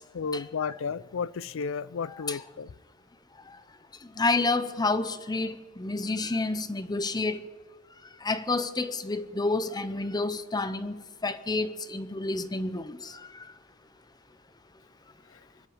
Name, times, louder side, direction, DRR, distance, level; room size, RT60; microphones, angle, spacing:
voice 1, 0.1-2.7, left 5 dB, 70° left, 0.5 m, -33 dB
voice 2, 2.1-2.4 4.2-7.4 8.2-13.5, left 3 dB, 20° left, 0.7 m, -29 dB
24.5 x 11.0 x 4.9 m
head